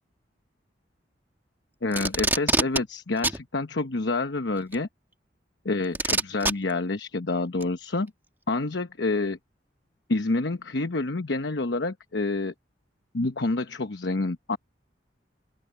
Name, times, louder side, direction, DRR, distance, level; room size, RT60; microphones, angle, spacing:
voice 1, 1.8-4.9 5.6-8.1 8.5-9.4 10.1-12.5 13.1-14.6, left 2 dB, 70° left, 1.0 m, -28 dB
Packing tape duct tape, 1.9-2.8 3.2-3.4 4.7-4.8 5.9-6.5 7.6-7.7, right 2 dB, 10° right, 1.5 m, -24 dB
open air
head